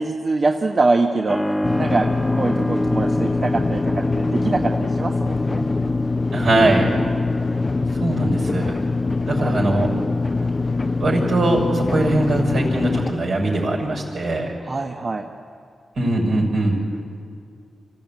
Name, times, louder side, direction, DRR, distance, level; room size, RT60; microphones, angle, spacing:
voice 1, 0.0-2.1 2.3-3.8 4.1-5.7 9.4-9.5 14.6-15.3, right 3 dB, 50° right, 2 dB, 1.3 m, -23 dB
Keyboard (musical), 1.3-13.7, left 1 dB, 10° left, 1.1 m, -30 dB
sound 1, 1.6-13.1, left 3 dB, 40° left, 0.6 m, -23 dB
voice 2, 6.3-6.9 8.0-8.7 9.2-9.9 10.9-14.5 15.9-16.8, right 2 dB, 75° right, -2 dB, 6.6 m, -21 dB
25.5 x 15.5 x 8.9 m, 2.3 s
cardioid pair, 45°, 0 cm